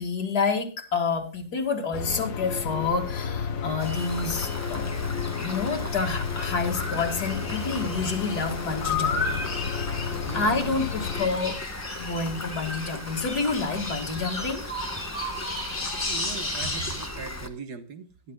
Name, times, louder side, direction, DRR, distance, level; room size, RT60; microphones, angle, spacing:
voice 1, 0.0-4.9 5.4-9.4 9.8-10.0 10.3-11.6 12.0-14.6, left 4 dB, 90° left, 3 dB, 2.4 m, -28 dB
sound 1, 1.9-11.3, left 6 dB, 60° left, 1.4 m, -32 dB
Rain, 3.8-17.5, left 1 dB, 15° left, 0.8 m, -38 dB
sound 2, 6.7-17.1, left 3 dB, 40° left, 3.2 m, -34 dB
voice 2, 10.3-11.0 16.0-18.3, right 6 dB, 80° right, 8 dB, 1.8 m, -40 dB
20.5 x 11.5 x 2.3 m, 0.33 s
omnidirectional pair, 1.7 m